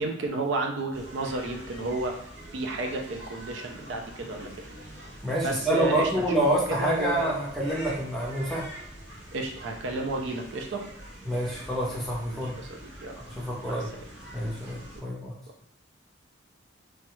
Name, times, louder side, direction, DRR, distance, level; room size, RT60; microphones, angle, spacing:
voice 1, 0.0-4.5 5.4-6.3 6.7-7.4 9.3-10.8 12.4-13.2 13.6-13.9, right 2 dB, 70° right, 3 dB, 0.4 m, -32 dB
sound 1, 0.9-15.0, right 1 dB, 90° right, 1.4 m, -45 dB
voice 2, 5.2-8.7 11.2-12.6 13.3-13.9 14.3-15.3, right 1 dB, ahead, -5 dB, 0.6 m, -27 dB
3.1 x 2.3 x 2.9 m, 0.70 s
head